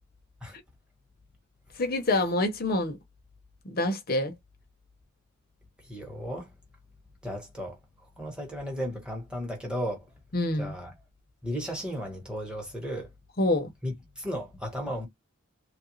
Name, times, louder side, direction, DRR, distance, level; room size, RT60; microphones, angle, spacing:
voice 1, 1.8-3.0 3.7-4.3 10.3-10.7 13.4-13.7, left 2 dB, 45° left, 0.7 m, -26 dB
voice 2, 5.9-6.5 7.2-7.8 8.2-10.0 10.6-10.9 11.4-13.1 13.8-15.1, equal, 5° right, 1.1 m, -34 dB
3.1 x 2.4 x 3.0 m
head